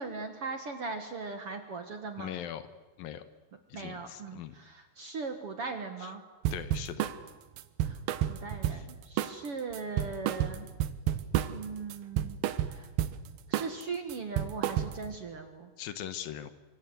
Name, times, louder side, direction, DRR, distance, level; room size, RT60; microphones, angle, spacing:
voice 1, 0.0-2.4 3.7-6.2 7.8-8.0 8.3-10.7 11.5-12.4 12.6-12.9 13.5-15.7, right 4 dB, 50° right, 6 dB, 1.9 m, -39 dB
voice 2, 2.2-2.7 3.0-3.2 3.7-4.6 6.0-6.1 6.5-7.1 8.7-8.9 15.8-16.5, left 10 dB, 70° left, 12 dB, 2.8 m, -40 dB
sound 1, 6.4-7.2 7.6-8.9 9.2-9.5 9.7-11.7 11.9-13.2 13.5-13.8 14.1-15.1, right 11 dB, 80° right, 2.8 m, -31 dB
25.5 x 25.0 x 8.0 m, 1.2 s
omnidirectional pair, 4.4 m